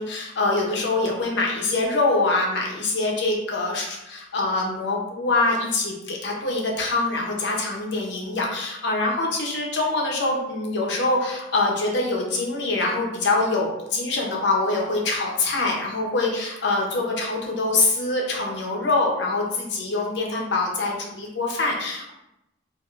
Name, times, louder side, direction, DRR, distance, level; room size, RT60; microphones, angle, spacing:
voice 1, 0.0-22.1, left 2 dB, 65° left, -1 dB, 0.7 m, -24 dB
3.3 x 2.4 x 2.4 m, 0.86 s
head